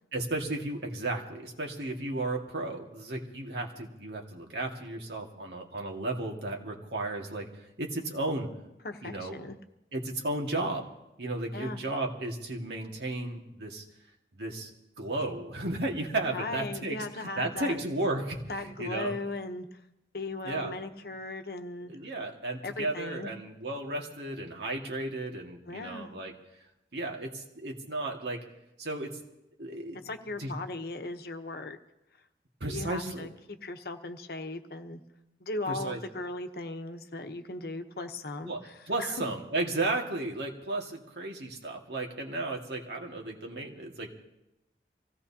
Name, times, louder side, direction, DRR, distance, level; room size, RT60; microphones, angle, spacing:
voice 1, 0.1-7.5 7.8-8.5 9.0-9.4 9.9-10.9 11.2-13.8 14.4-14.7 15.0-19.2 20.4-20.7 21.9-26.3 26.9-28.5 28.8-29.2 29.6-30.0 30.4-30.5 32.6-33.3 35.7-36.2 38.4-44.1, right 2 dB, 70° right, 1 dB, 1.9 m, -34 dB
voice 2, 8.8-9.6 11.5-11.8 16.3-17.8 18.5-19.8 20.1-21.9 22.6-23.3 25.7-26.1 30.0-31.8 32.7-35.0 35.4-39.2, left 2 dB, 55° left, 7 dB, 0.9 m, -38 dB
25.5 x 16.5 x 2.8 m, 0.90 s
head